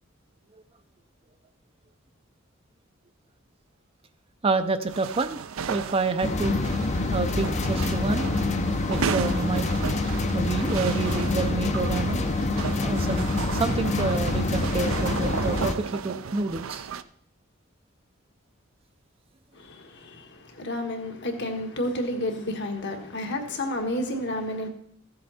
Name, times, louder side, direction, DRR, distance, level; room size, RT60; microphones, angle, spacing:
voice 1, 4.4-5.4 5.7-6.6 7.1-8.3 8.9-9.7 10.3-12.2 12.8-13.2 13.5-16.9, right 3 dB, 30° right, 0.5 m, -28 dB
sound 1, 4.9-17.0, right 6 dB, 80° right, 0.5 m, -34 dB
sound 2, 6.2-15.7, left 2 dB, 35° left, 0.7 m, -26 dB
voice 2, 19.5-24.7, left 1 dB, 60° left, 1.6 m, -31 dB
14.5 x 7.7 x 4.2 m
head